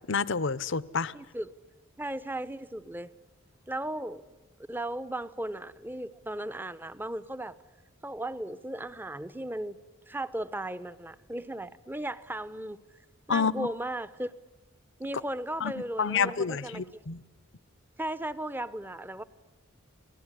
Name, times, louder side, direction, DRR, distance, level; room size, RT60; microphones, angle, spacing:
voice 1, 0.1-1.1 13.3-13.7 15.6-15.7 16.0-17.2, left 5 dB, 60° left, 0.8 m, -28 dB
voice 2, 1.1-1.5 2.0-3.1 3.7-4.2 4.7-7.5 8.0-9.8 10.1-12.8 13.3-14.3 15.0-17.0 18.0-19.2, right 1 dB, 10° right, 0.8 m, -36 dB
29.5 x 19.0 x 9.9 m
head